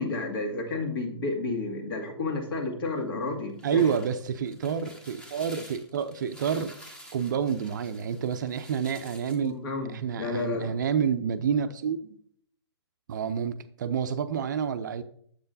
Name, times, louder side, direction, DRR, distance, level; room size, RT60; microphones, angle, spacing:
voice 1, 0.0-3.8 9.4-10.7, left 3 dB, 50° left, 2.0 m, -31 dB
sound 1, 3.3-9.5, equal, 5° left, 1.0 m, -49 dB
voice 2, 3.6-6.7 7.1-9.6 9.9-12.2 13.1-15.0, right 7 dB, 40° right, 0.5 m, -29 dB
8.6 x 7.5 x 2.7 m
figure-of-eight pair, 125°, 15 cm